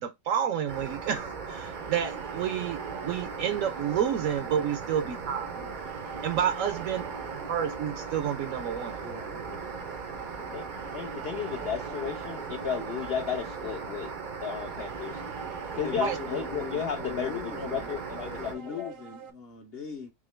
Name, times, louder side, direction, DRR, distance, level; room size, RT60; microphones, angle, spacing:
voice 1, 0.0-5.5 6.2-7.0 7.5-9.0 16.0-16.2, right 9 dB, 65° right, 0.9 m, -30 dB
sound 1, 0.7-18.5, right 5 dB, 50° right, 0.5 m, -39 dB
sound 2, 1.6-19.3, right 6 dB, 85° right, 1.3 m, -44 dB
voice 2, 9.0-9.7 15.8-17.9 18.4-20.1, left 7 dB, 50° left, 0.9 m, -40 dB
voice 3, 10.9-14.1 14.4-15.2 15.7-18.9, left 7 dB, 70° left, 0.5 m, -34 dB
3.7 x 3.0 x 3.1 m
omnidirectional pair, 1.6 m